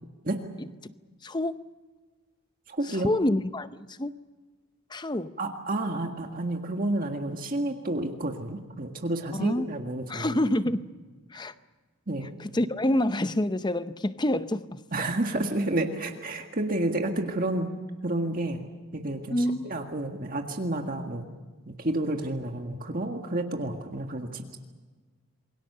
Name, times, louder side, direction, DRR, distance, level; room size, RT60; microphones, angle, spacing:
voice 1, 1.2-1.7 2.9-4.1 4.9-5.3 9.4-9.7 10.1-10.9 11.3-11.5 12.4-14.8 19.3-19.6, left 1 dB, 20° left, 0.6 m, -27 dB
voice 2, 2.7-3.1 5.4-10.3 12.1-12.3 14.9-17.7 18.0-18.6 18.9-21.3 21.7-24.6, right 1 dB, 40° right, 1.7 m, -30 dB
27.5 x 23.0 x 6.8 m
head